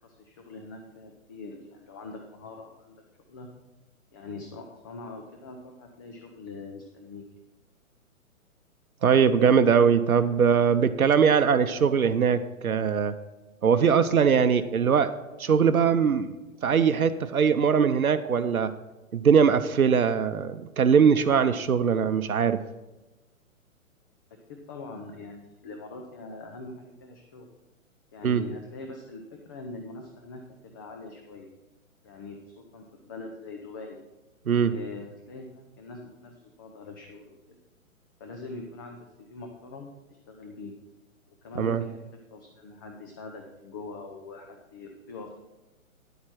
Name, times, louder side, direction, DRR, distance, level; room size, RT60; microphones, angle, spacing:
voice 1, 0.0-3.0 3.3-3.5 4.1-7.2 24.5-27.5 28.1-31.5 32.0-34.0 34.6-37.6 38.2-40.7 41.4-42.0 42.3-45.3, left 3 dB, 15° left, 3 dB, 0.5 m, -43 dB
voice 2, 9.0-13.1 13.6-16.3 16.6-18.7 19.1-22.6 28.2-28.4 34.5-34.7 41.6-41.8, right 6 dB, 85° right, 10 dB, 0.7 m, -21 dB
10.0 x 8.5 x 4.5 m, 1.1 s
figure-of-eight pair, 125°, 42 cm